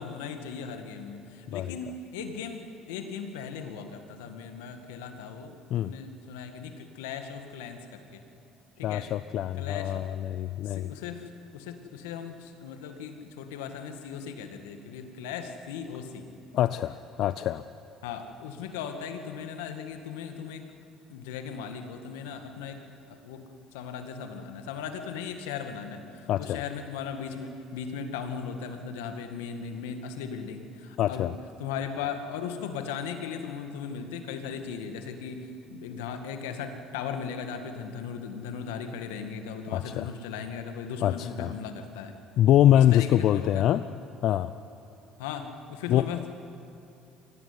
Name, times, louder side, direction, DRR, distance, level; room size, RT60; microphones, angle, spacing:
voice 1, 0.0-8.2 8.8-9.1 9.5-10.0 10.6-16.3 18.0-20.6 21.1-22.8 23.1-31.3 31.6-42.2 42.7-43.7 45.2-46.2, left 6 dB, 90° left, 7 dB, 2.0 m, -37 dB
voice 2, 8.8-10.9 16.5-17.6 26.3-26.6 31.0-31.3 39.7-40.1 41.0-41.5 42.4-43.9 44.2-44.5 45.9-46.1, left 12 dB, 65° left, 13 dB, 0.5 m, -24 dB
22.5 x 16.5 x 9.8 m, 2.7 s
supercardioid pair, 80°, 0 cm